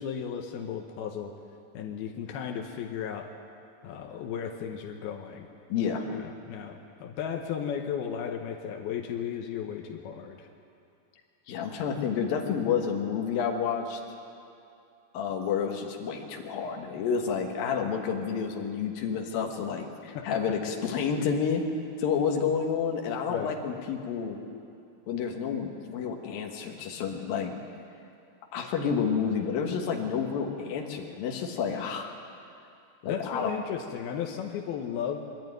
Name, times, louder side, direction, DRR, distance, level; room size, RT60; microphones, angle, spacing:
voice 1, 0.0-1.3 1.7-3.3 3.8-5.5 6.1-10.5 20.1-20.4 23.3-23.6 33.0-35.2, left 8 dB, 90° left, 3 dB, 3.0 m, -35 dB
voice 2, 5.7-6.1 11.5-14.0 15.1-21.7 22.0-24.4 25.1-27.5 28.5-32.1 33.0-33.5, left 6 dB, 75° left, 2 dB, 3.3 m, -30 dB
23.5 x 12.5 x 9.3 m, 2.6 s
omnidirectional pair, 4.3 m